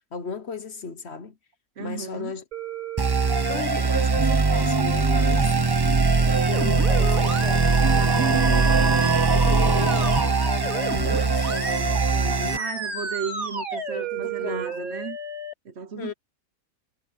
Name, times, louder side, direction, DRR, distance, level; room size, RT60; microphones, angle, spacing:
voice 1, 0.0-1.4 1.8-2.4 3.5-5.5 6.2-8.8 9.3-12.7 13.7-14.8 16.0-16.1, left 5 dB, 50° left, 1.3 m, -36 dB
voice 2, 1.8-2.4 8.2-9.1 12.5-15.2 15.6-16.1, right 7 dB, 50° right, 1.2 m, -34 dB
sound 1, 2.5-15.5, right 5 dB, 80° right, 4.3 m, -32 dB
sound 2, 3.0-12.6, right 4 dB, 25° right, 0.6 m, -21 dB
omnidirectional pair, 1.5 m